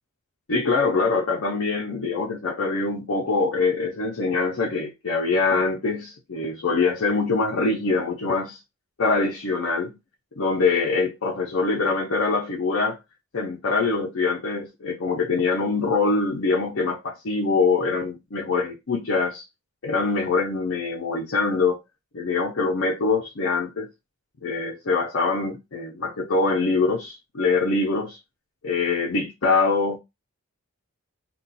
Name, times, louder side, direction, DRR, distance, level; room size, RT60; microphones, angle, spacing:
voice 1, 0.5-8.6 9.0-9.9 10.4-13.0 13.3-19.5 19.8-21.8 22.1-23.9 24.4-28.2 28.6-30.0, left 4 dB, 60° left, 0.6 m, -24 dB
2.4 x 2.3 x 4.0 m
head